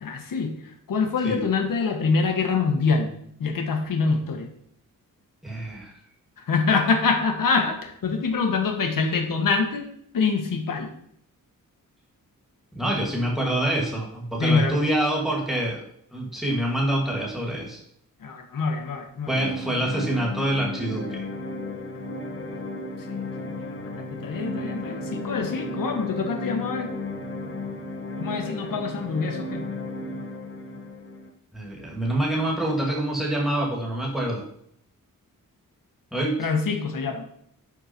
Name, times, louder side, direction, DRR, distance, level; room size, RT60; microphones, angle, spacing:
voice 1, 0.0-0.5 0.9-3.1 3.4-4.5 6.4-9.9 10.1-10.9 14.4-14.9 18.2-19.3 23.1-26.9 28.2-29.7 36.4-37.3, left 4 dB, 70° left, 4 dB, 1.5 m, -25 dB
voice 2, 5.4-6.0 12.7-15.8 16.1-17.8 19.3-21.2 31.5-34.4 36.1-36.5, right 1 dB, ahead, -3 dB, 2.3 m, -26 dB
sound 1, 19.3-31.3, left 2 dB, 35° left, 1.2 m, -34 dB
11.0 x 4.5 x 4.5 m, 0.69 s
wide cardioid pair, 155°, 34 cm